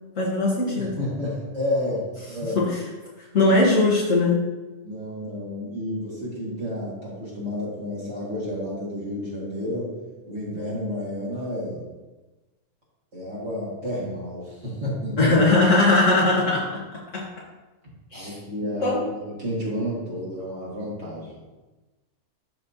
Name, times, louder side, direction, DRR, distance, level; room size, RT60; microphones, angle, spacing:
voice 1, 0.2-0.9 2.5-2.8 3.3-4.4 15.2-16.8 17.1-17.2 18.1-18.3 18.8-19.0, left 2 dB, 55° left, -6 dB, 1.5 m, -20 dB
voice 2, 0.8-2.6 4.8-9.9 10.3-11.8 13.1-15.4 18.1-21.4, left 1 dB, 50° right, -7 dB, 2.2 m, -31 dB
11.5 x 4.3 x 2.7 m, 1.2 s
omnidirectional pair, 1.6 m